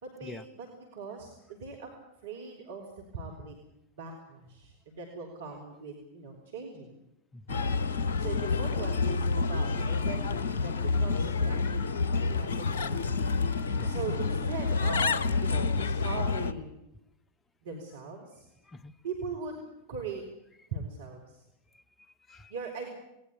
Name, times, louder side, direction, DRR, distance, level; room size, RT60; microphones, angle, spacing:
voice 1, 0.0-1.9 2.2-2.9 3.1-3.6 4.0-7.0 8.2-11.7 12.2-13.2 13.8-16.7 17.6-18.5 19.0-19.6 19.9-20.2 20.7-21.4 22.5-22.9, right 4 dB, 60° right, 1 dB, 4.0 m, -40 dB
Bird, 7.5-16.5, left 4 dB, 65° left, 1.1 m, -28 dB
voice 2, 18.6-19.0 21.7-22.5, left 2 dB, 15° left, 18 dB, 1.0 m, -47 dB
19.5 x 19.5 x 8.4 m, 0.87 s
figure-of-eight pair, 90°, 0 cm